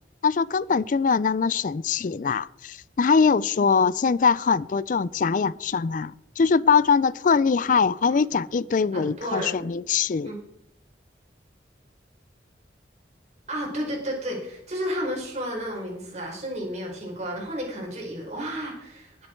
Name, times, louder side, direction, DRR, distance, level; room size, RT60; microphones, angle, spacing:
voice 1, 0.2-10.3, left 5 dB, 45° left, 20 dB, 0.4 m, -22 dB
voice 2, 8.9-9.7 10.2-10.4 13.5-19.3, equal, 40° right, -1 dB, 4.7 m, -32 dB
19.5 x 8.0 x 4.5 m, 0.80 s
head